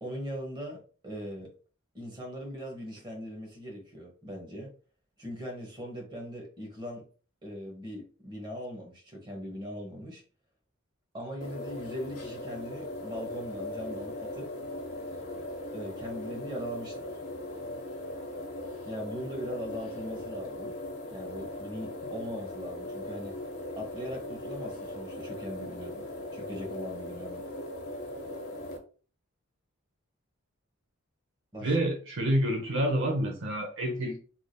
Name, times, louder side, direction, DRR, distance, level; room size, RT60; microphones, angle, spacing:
voice 1, 0.0-1.5 1.9-4.7 5.2-7.1 7.4-10.2 11.1-14.5 15.7-17.1 18.9-20.7 21.1-23.3 23.8-27.4 31.5-31.7, equal, 20° right, 1.1 m, -40 dB
sound 1, 11.4-28.8, left 1 dB, 85° left, 0.8 m, -39 dB
voice 2, 31.6-34.2, right 1 dB, 60° right, 0.7 m, -28 dB
3.4 x 2.8 x 2.2 m
head